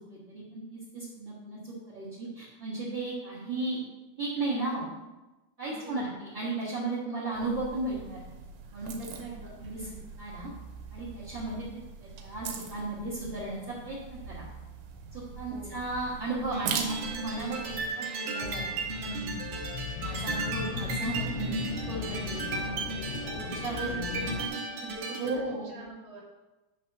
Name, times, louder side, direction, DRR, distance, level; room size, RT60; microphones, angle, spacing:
voice 1, 0.1-3.8 4.2-4.9 5.6-8.2 8.7-9.1 9.6-9.9 10.2-10.5 10.9-14.4 15.1-19.6 20.0-22.8 23.4-23.9 25.2-25.7, right 2 dB, 50° right, -8 dB, 1.4 m, -35 dB
voice 2, 5.6-6.0 9.1-10.0 15.4-15.7 23.2-26.2, right 3 dB, 30° right, -6 dB, 1.7 m, -44 dB
sound 1, 7.3-17.9, right 6 dB, 90° right, 3.1 m, -41 dB
sound 2, 16.5-25.4, right 3 dB, 65° right, 2.3 m, -35 dB
sound 3, 18.4-24.5, left 6 dB, 80° left, 2.4 m, -37 dB
10.0 x 3.5 x 6.1 m, 1.1 s
omnidirectional pair, 4.9 m